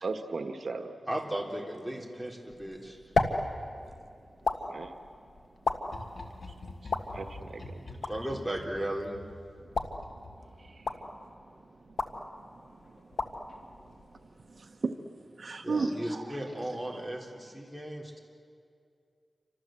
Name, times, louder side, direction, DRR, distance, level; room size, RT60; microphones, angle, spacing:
voice 1, 0.0-1.0 4.7-5.0 7.1-7.8, right 3 dB, 75° right, 6 dB, 1.5 m, -37 dB
voice 2, 1.1-3.0 7.9-9.2 15.6-18.2, right 1 dB, ahead, 0 dB, 3.8 m, -36 dB
sound 1, 2.5-14.7, left 3 dB, 90° left, 1.7 m, -36 dB
sound 2, 5.9-11.1 12.8-13.2 13.5-13.6, left 2 dB, 55° left, 3.2 m, -47 dB
voice 3, 10.6-11.0 14.6-14.9 15.4-16.4, right 4 dB, 55° right, 5 dB, 1.2 m, -34 dB
29.0 x 26.0 x 7.8 m, 2.3 s
wide cardioid pair, 95°, 0 cm